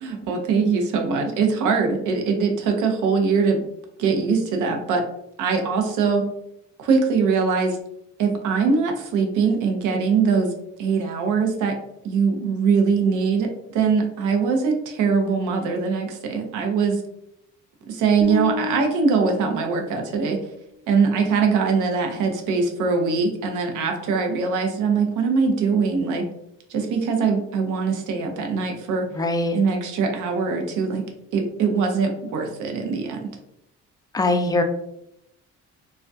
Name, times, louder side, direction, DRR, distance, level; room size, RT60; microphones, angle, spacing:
voice 1, 0.0-3.6 4.0-5.0 5.4-6.2 6.8-7.8 8.2-10.5 10.8-11.7 12.0-17.0 17.8-20.4 20.9-26.3 26.7-29.1 29.5-31.0 31.3-33.3, right 5 dB, 85° right, 4 dB, 0.6 m, -22 dB
sound 1, 18.2-20.4, left 3 dB, 20° right, 0.6 m, -31 dB
voice 2, 29.2-29.6 34.1-34.6, left 2 dB, 15° left, 4 dB, 0.3 m, -21 dB
2.2 x 2.1 x 2.5 m, 0.78 s
cardioid pair, 90°, 30 cm